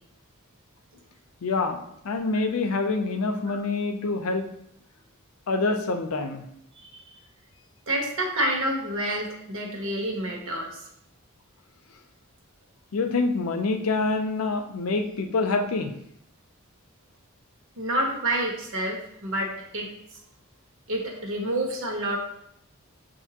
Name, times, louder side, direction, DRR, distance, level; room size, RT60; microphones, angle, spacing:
voice 1, 1.4-1.8 2.0-4.5 5.5-6.5 12.9-15.9, left 3 dB, 75° left, 6 dB, 0.5 m, -26 dB
voice 2, 7.9-10.8 17.8-19.9 20.9-22.2, right 1 dB, 65° right, 0 dB, 1.1 m, -28 dB
6.8 x 2.7 x 2.8 m, 0.76 s
head